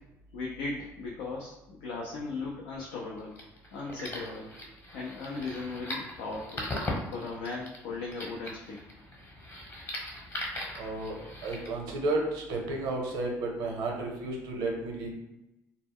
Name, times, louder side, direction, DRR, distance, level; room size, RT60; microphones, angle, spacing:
voice 1, 0.3-3.4 3.7-4.5 4.9-6.7 7.1-8.8, left 3 dB, 85° left, -3 dB, 0.4 m, -37 dB
sound 1, 3.2-11.7, left 1 dB, 35° left, 0.9 m, -40 dB
voice 2, 10.8-11.2 11.4-15.1, right 2 dB, 80° right, 0 dB, 0.7 m, -32 dB
2.1 x 2.1 x 3.5 m, 0.93 s
supercardioid pair, 65°, 7 cm